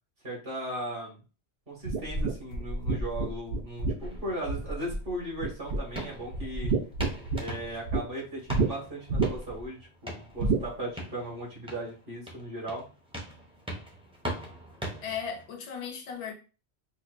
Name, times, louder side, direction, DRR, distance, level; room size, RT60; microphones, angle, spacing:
voice 1, 0.2-1.2 1.7-6.7 7.3-12.9, right 1 dB, 60° right, 2.0 m, -37 dB
sound 1, 1.9-5.1 5.4-6.0 6.3-8.0 8.5-8.7 9.1-9.6 10.4-10.7, right 3 dB, 75° right, 1.0 m, -29 dB
sound 2, 4.0-15.5, equal, 5° right, 0.6 m, -42 dB
voice 2, 15.0-16.3, left 7 dB, 80° left, 1.0 m, -36 dB
4.3 x 2.2 x 2.5 m
omnidirectional pair, 1.1 m